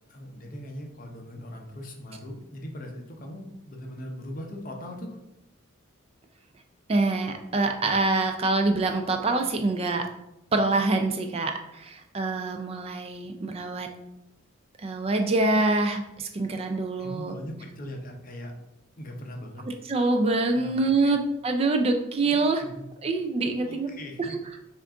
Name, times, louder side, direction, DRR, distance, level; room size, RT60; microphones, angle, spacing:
voice 1, 0.1-5.2 17.0-18.5 19.0-19.6 20.5-20.7 21.0-21.1 22.2-22.3 22.6-22.9 23.6-24.4, left 1 dB, 40° left, 2 dB, 0.7 m, -40 dB
voice 2, 6.9-10.1 10.5-13.9 14.8-17.3 19.9-22.6 23.0-23.9 24.3-24.4, right 3 dB, 30° right, 5 dB, 0.3 m, -25 dB
5.9 x 2.5 x 3.6 m, 0.86 s
head